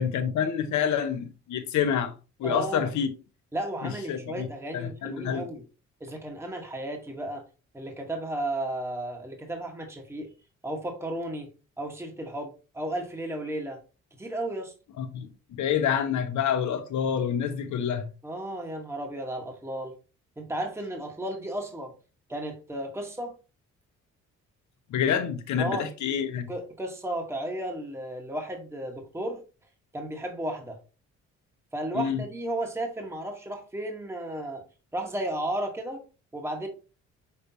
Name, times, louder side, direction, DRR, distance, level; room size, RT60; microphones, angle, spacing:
voice 1, 0.0-2.1 2.4-3.1 3.8-4.5 4.7-5.4 15.0-18.0 24.9-26.5 31.9-32.2, left 8 dB, 70° left, 0.8 m, -27 dB
voice 2, 2.4-2.9 3.5-5.6 6.0-7.4 7.7-10.3 10.6-11.5 11.8-13.8 14.2-14.7 18.2-20.0 20.4-21.9 22.3-23.3 25.6-25.9 26.5-29.4 29.9-30.8 31.7-34.6 34.9-36.0 36.3-36.7, right 1 dB, 10° right, 1.1 m, -34 dB
5.6 x 3.3 x 2.6 m
cardioid pair, 90°, 30 cm